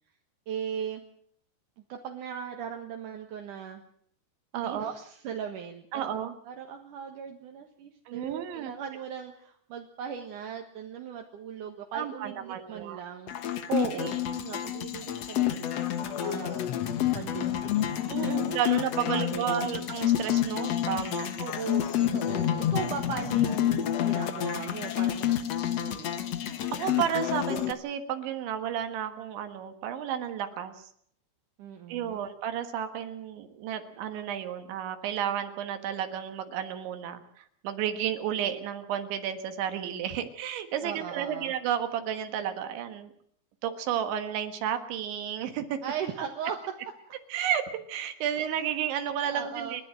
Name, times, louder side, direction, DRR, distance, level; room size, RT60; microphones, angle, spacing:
voice 1, 0.5-1.0 1.9-3.8 4.6-6.2 6.5-13.3 13.9-16.6 17.1-18.7 19.1-19.9 21.4-26.2 31.6-32.2 40.8-41.5 45.8-46.6 49.2-49.8, right 8 dB, 60° right, 3 dB, 2.5 m, -39 dB
voice 2, 4.5-4.9 5.9-6.3 8.1-8.7 11.9-13.0 13.7-14.1 18.1-21.3 26.7-30.9 31.9-43.1 43.6-45.8 47.3-47.6 47.9-49.9, right 9 dB, 80° right, 8 dB, 3.9 m, -32 dB
sound 1, 13.3-27.7, left 11 dB, 80° left, 1.4 m, -29 dB
30.0 x 12.0 x 7.7 m, 0.65 s
omnidirectional pair, 5.2 m